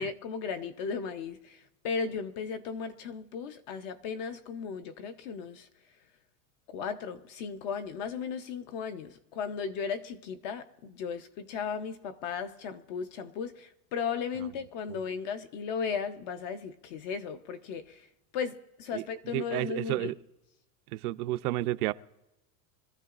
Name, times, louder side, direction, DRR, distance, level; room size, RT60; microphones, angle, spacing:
voice 1, 0.0-5.7 6.7-18.1 18.3-20.1, left 6 dB, 35° left, 0.4 m, -36 dB
voice 2, 19.3-20.1 20.9-21.9, right 17 dB, 75° right, 0.6 m, -31 dB
25.0 x 14.0 x 2.4 m
supercardioid pair, 175°, 45 cm